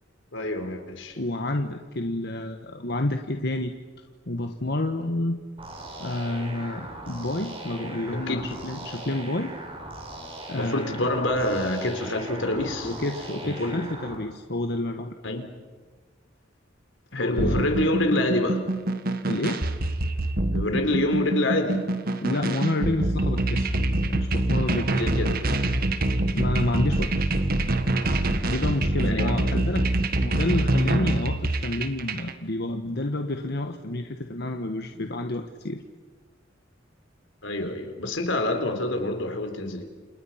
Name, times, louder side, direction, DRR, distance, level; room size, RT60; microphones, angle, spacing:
voice 1, 0.3-1.2 8.3-8.5 10.6-12.9 13.4-13.8 15.2-15.5 17.1-18.6 20.5-21.9 24.9-25.4 29.0-29.7 37.4-39.8, left 1 dB, 85° left, 6 dB, 4.2 m, -27 dB
voice 2, 1.2-3.7 4.3-5.4 6.0-9.5 10.5-11.0 12.8-15.1 17.1-17.6 19.3-19.7 22.2-23.7 24.0-25.1 26.3-27.1 28.4-29.9 30.2-35.8 37.6-37.7, left 1 dB, 60° left, 5 dB, 1.5 m, -29 dB
sound 1, 5.6-14.1, right 1 dB, 30° right, 6.4 m, -39 dB
sound 2, 17.4-32.3, right 1 dB, 50° right, 1.6 m, -25 dB
30.0 x 28.5 x 5.9 m, 1.4 s
head